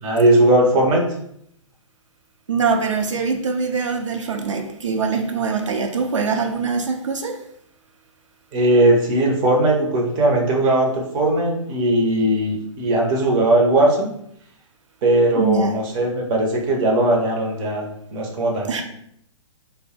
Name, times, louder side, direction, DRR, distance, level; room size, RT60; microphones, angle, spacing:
voice 1, 0.0-1.0 8.5-14.1 15.0-18.8, right 1 dB, 25° right, 0 dB, 0.6 m, -18 dB
voice 2, 2.5-7.4 15.4-15.8 18.7-18.8, right 5 dB, 70° right, 5 dB, 0.6 m, -23 dB
3.3 x 2.1 x 4.3 m, 0.71 s
figure-of-eight pair, 120°, 17 cm